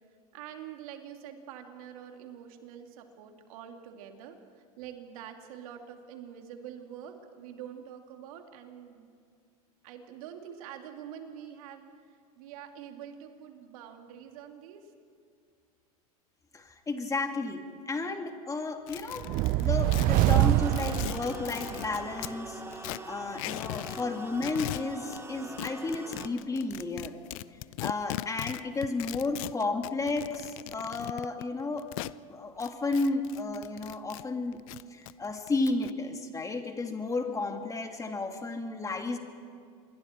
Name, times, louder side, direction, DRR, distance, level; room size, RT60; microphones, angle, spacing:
voice 1, 0.3-4.4 4.8-9.1 9.8-11.9 12.4-14.8 33.8-33.9, right 9 dB, 65° right, 4 dB, 2.7 m, -45 dB
voice 2, 16.5-22.6 23.1-27.2 27.8-31.9 32.3-34.6 34.9-39.2, left 3 dB, 15° left, 4 dB, 2.4 m, -33 dB
sound 1, 18.9-22.4 22.7-24.1 24.3-25.2 25.6-32.2 32.6-34.2 34.5-35.9, left 20 dB, 60° left, 0.5 m, -39 dB
sound 2, 19.2-21.9, right 16 dB, 45° right, 0.6 m, -25 dB
sound 3, 20.3-26.3, right 2 dB, 15° right, 2.4 m, -43 dB
27.0 x 22.5 x 4.5 m, 2.3 s
hypercardioid pair, 100°, 19 cm